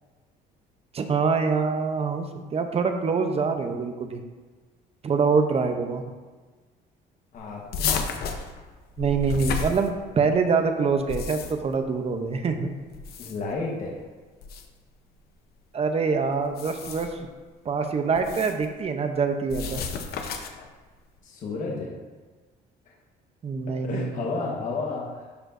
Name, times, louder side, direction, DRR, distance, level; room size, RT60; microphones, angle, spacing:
voice 1, 0.9-2.2 2.5-4.2 5.0-6.0 9.0-12.7 15.7-17.3 17.6-19.8 23.4-24.1, right 5 dB, 35° right, 6 dB, 0.8 m, -25 dB
voice 2, 7.3-8.2 13.2-14.0 21.2-22.0 22.9-23.0 23.8-25.3, left 3 dB, 50° left, -3 dB, 1.3 m, -32 dB
sound 1, 7.7-10.3 10.9-11.8 12.9-13.6 14.4-14.7 16.4-17.2 18.1-18.6 19.5-20.7, left 5 dB, 65° left, 0.8 m, -32 dB
12.5 x 4.5 x 2.6 m, 1.4 s
cardioid pair, 110°, 17 cm